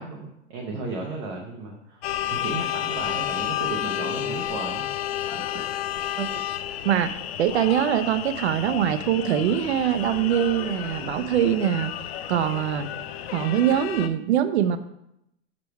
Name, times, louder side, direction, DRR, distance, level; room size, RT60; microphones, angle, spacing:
voice 1, 0.0-4.9 5.3-6.0, right 3 dB, 20° right, 1 dB, 0.4 m, -35 dB
sound 1, 2.0-14.1, left 11 dB, 70° left, 0.5 m, -31 dB
voice 2, 6.8-11.9 12.3-12.9 13.3-14.8, right 10 dB, 80° right, 11 dB, 0.6 m, -23 dB
5.7 x 5.1 x 4.6 m, 0.83 s
supercardioid pair, 170°, 32 cm